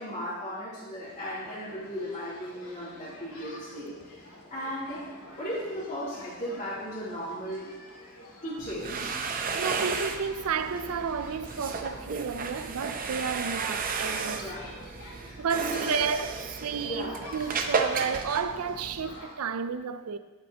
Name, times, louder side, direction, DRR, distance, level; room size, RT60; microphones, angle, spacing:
voice 1, 0.0-7.7 8.4-9.2 14.3-14.7 15.1-16.0 16.8-17.3, equal, 35° left, 3.1 m, -36 dB
sound 1, 1.0-19.4, left 1 dB, 90° left, 1.9 m, -48 dB
sound 2, 8.6-19.2, right 5 dB, 40° right, 0.6 m, -33 dB
voice 2, 9.5-14.6 15.4-20.2, right 6 dB, 90° right, 0.5 m, -32 dB
10.5 x 8.2 x 2.9 m
head